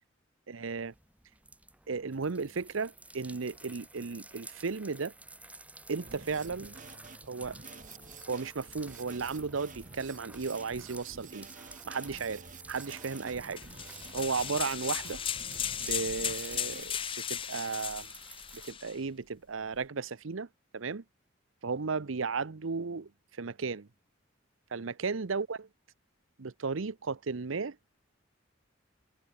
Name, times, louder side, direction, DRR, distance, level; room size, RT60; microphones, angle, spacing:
voice 1, 0.5-0.9 1.9-5.1 5.9-6.7 7.2-7.6 8.3-11.5 11.9-13.6 14.1-15.2 15.8-18.1 18.5-20.5 20.7-21.0 21.6-23.1 23.4-23.9 24.7-25.7 26.4-27.8, right 4 dB, 80° right, 0.8 m, -35 dB
sound 1, 0.7-18.7, right 2 dB, 5° right, 6.2 m, -51 dB
Drum kit, 6.0-16.8, right 4 dB, 40° right, 1.2 m, -50 dB
sound 2, 13.6-19.0, left 9 dB, 25° left, 0.5 m, -36 dB
head